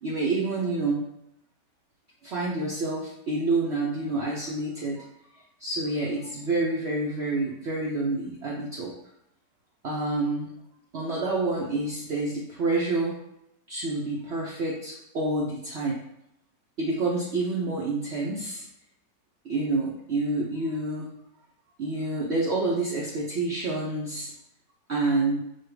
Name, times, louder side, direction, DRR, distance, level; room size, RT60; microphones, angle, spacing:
voice 1, 0.0-1.0 2.2-8.9 9.8-10.5 10.9-13.2 13.7-16.0 16.8-18.7 19.4-21.1 21.8-24.3 24.9-25.4, right 2 dB, 70° right, -4 dB, 0.6 m, -28 dB
4.4 x 2.2 x 4.7 m, 0.81 s
omnidirectional pair, 2.0 m